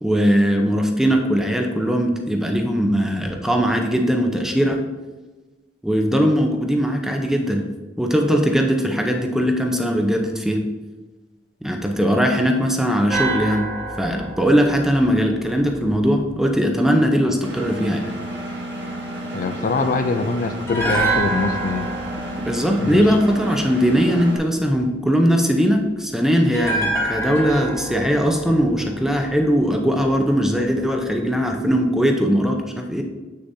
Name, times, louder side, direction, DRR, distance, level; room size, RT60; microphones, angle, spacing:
voice 1, 0.0-4.8 5.8-7.6 8.0-10.6 11.6-13.7 14.0-18.0 22.3-33.0, equal, 5° right, 3 dB, 0.6 m, -20 dB
sound 1, 13.1-16.3 20.7-23.9 26.5-29.7 30.0-30.2, right 2 dB, 15° left, 1.3 m, -28 dB
Engine, 17.4-24.4, right 1 dB, 75° right, 1.6 m, -31 dB
voice 2, 19.3-21.9 22.8-23.0, left 3 dB, 50° left, 7 dB, 0.4 m, -23 dB
7.8 x 6.6 x 2.7 m, 1.2 s
head